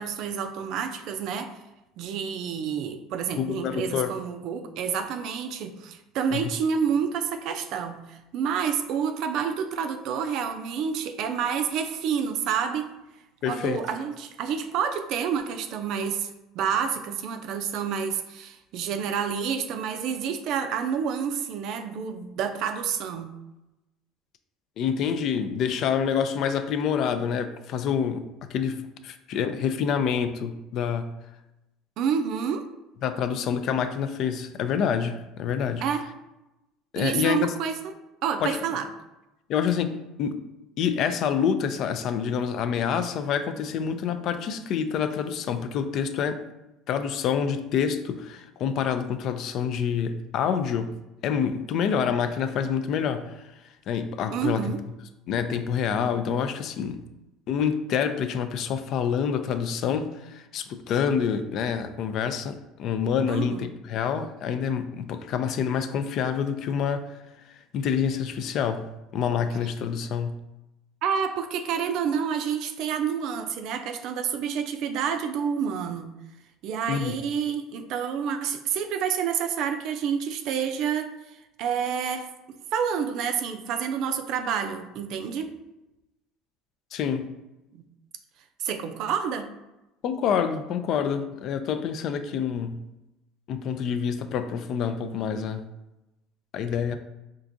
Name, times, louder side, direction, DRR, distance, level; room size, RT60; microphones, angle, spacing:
voice 1, 0.0-1.5 2.0-12.9 13.4-16.3 16.6-23.3 32.0-32.6 35.8-36.0 37.0-37.8 38.2-38.9 54.3-54.8 63.3-63.7 71.0-76.1 76.6-81.1 81.6-85.5 87.7-87.8 88.6-89.5, right 7 dB, 65° right, 7 dB, 0.4 m, -28 dB
voice 2, 3.4-4.1 6.3-6.4 13.4-13.8 24.8-28.2 28.5-31.1 33.0-35.8 36.9-37.5 38.4-38.6 39.5-39.9 40.2-40.4 40.8-46.4 46.9-50.9 51.2-53.4 53.9-54.7 55.3-57.0 57.5-67.1 67.7-68.9 69.1-70.3 76.9-77.2 86.9-87.3 90.0-92.8 93.5-95.6 96.5-97.0, left 7 dB, 60° left, 10 dB, 0.3 m, -27 dB
4.6 x 2.5 x 2.6 m, 0.96 s
supercardioid pair, 90°, 0 cm